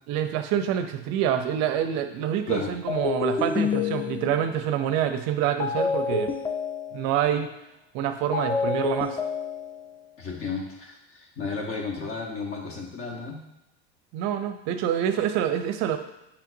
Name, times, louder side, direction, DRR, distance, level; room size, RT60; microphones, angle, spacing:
voice 1, 0.1-6.3 6.9-7.5 7.9-9.2 14.1-16.0, right 10 dB, 55° right, 8 dB, 0.5 m, -26 dB
sound 1, 2.9-4.6 5.6-7.3 8.3-10.0, left 5 dB, 15° left, 0.5 m, -28 dB
voice 2, 10.2-13.4, left 4 dB, 40° left, 1 dB, 1.2 m, -33 dB
5.7 x 3.4 x 2.6 m, 0.89 s
hypercardioid pair, 90°, 33 cm